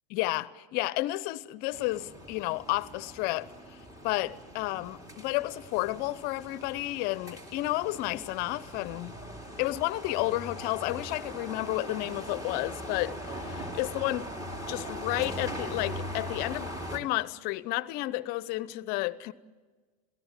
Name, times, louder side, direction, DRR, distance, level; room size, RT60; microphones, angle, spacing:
voice 1, 0.1-3.5 4.0-9.1 9.6-14.3 14.7-19.3, left 18 dB, 50° left, 0.8 m, -31 dB
sound 1, 1.7-17.0, equal, 15° right, 2.9 m, -41 dB
28.0 x 17.5 x 7.5 m
hypercardioid pair, 100°, 20 cm